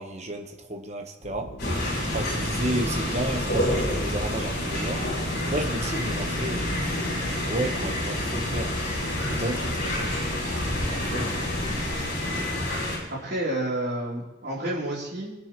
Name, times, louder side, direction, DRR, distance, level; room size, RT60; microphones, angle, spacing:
voice 1, 0.0-1.5 2.1-5.0 5.5-7.0 7.5-8.7 9.3-10.4 10.9-11.6, right 1 dB, 35° right, 4 dB, 1.1 m, -32 dB
sound 1, 1.2-12.0, equal, 85° left, 1.7 m, -37 dB
sound 2, 1.6-13.0, left 1 dB, 50° left, 4.1 m, -28 dB
voice 2, 13.1-15.3, right 1 dB, 55° right, -5 dB, 3.5 m, -30 dB
22.5 x 8.9 x 3.1 m, 1.0 s
head